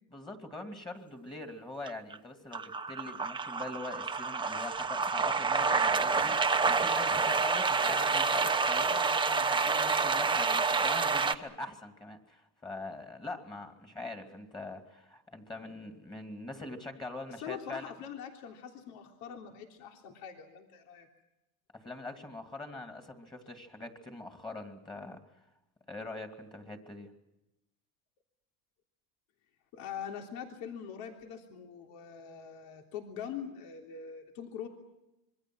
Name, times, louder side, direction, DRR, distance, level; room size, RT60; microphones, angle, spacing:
voice 1, 0.1-17.8 21.7-25.2 25.9-27.1, left 2 dB, 10° left, 6 dB, 2.6 m, -43 dB
sound 1, 1.9-2.2 2.5-11.3, right 4 dB, 10° right, 1.0 m, -28 dB
voice 2, 17.4-21.1 29.7-34.7, left 8 dB, 70° left, 3 dB, 3.5 m, -43 dB
26.5 x 23.5 x 6.3 m, 0.92 s
cardioid pair, 135°, 38 cm